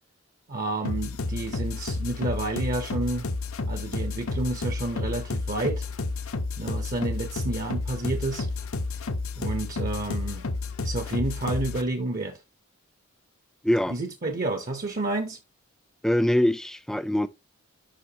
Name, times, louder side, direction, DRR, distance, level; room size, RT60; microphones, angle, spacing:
voice 1, 0.5-3.3 3.7-5.9 6.6-8.5 9.4-10.4 10.8-12.4 13.9-15.4, right 2 dB, 40° right, 0.8 m, -30 dB
sound 1, 0.8-11.8, left 3 dB, 75° left, 0.9 m, -31 dB
voice 2, 13.6-14.0 16.0-17.3, left 1 dB, ahead, 0.4 m, -23 dB
10.0 x 5.4 x 2.8 m
head